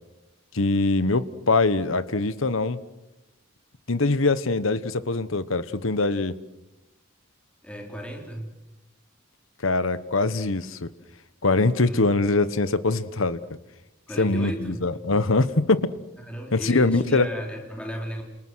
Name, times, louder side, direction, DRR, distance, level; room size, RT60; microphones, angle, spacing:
voice 1, 0.5-2.8 3.9-6.4 9.6-10.9 11.4-13.4 14.2-15.9 16.5-17.3, left 3 dB, 75° left, 14 dB, 1.2 m, -23 dB
voice 2, 7.6-8.5 11.8-12.1 14.1-14.9 16.2-18.2, equal, 5° left, 0 dB, 4.2 m, -35 dB
29.5 x 27.5 x 6.4 m, 0.96 s
head